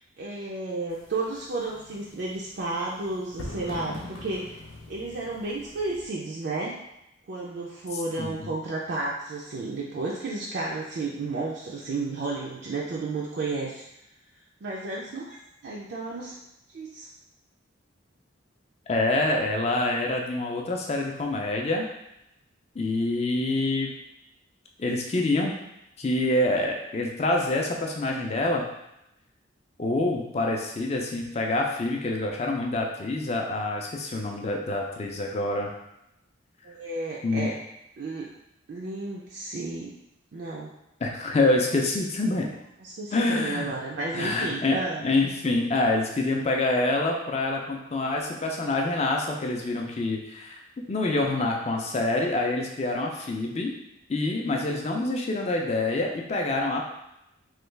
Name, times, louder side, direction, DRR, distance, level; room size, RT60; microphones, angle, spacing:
voice 1, 0.2-4.6 4.9-6.8 7.3-13.8 14.6-15.4 15.6-16.4 16.7-17.1 36.6-37.5 38.0-38.3 38.7-39.9 40.3-40.7 42.8-45.1, right 3 dB, 55° right, -4 dB, 0.4 m, -32 dB
sound 1, 0.9-6.0, left 1 dB, 90° left, 0.7 m, -43 dB
voice 2, 8.2-8.5 18.9-21.8 22.7-23.9 24.8-25.6 26.0-28.7 29.8-35.7 37.2-37.5 41.0-42.5 43.1-43.7 44.1-50.6 50.9-53.7 54.1-56.8, left 2 dB, 30° left, 1 dB, 0.4 m, -26 dB
3.1 x 2.3 x 3.2 m, 0.86 s
head